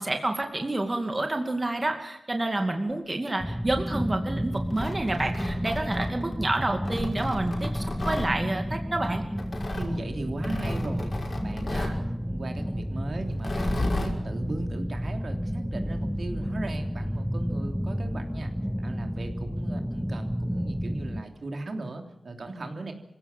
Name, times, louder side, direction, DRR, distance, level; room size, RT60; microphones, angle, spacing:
voice 1, 0.0-9.2, right 2 dB, 25° right, 5 dB, 2.4 m, -29 dB
sound 1, 3.4-21.2, equal, ahead, 1.1 m, -31 dB
Tearing, 4.6-6.4 6.9-8.3 9.4-9.9 10.4-12.0 13.3-14.1, left 2 dB, 45° left, 5.6 m, -33 dB
voice 2, 9.7-12.0 12.2-22.9, right 2 dB, 60° right, 5 dB, 3.3 m, -37 dB
26.5 x 17.0 x 7.4 m, 0.88 s
wide cardioid pair, 110°, 0 cm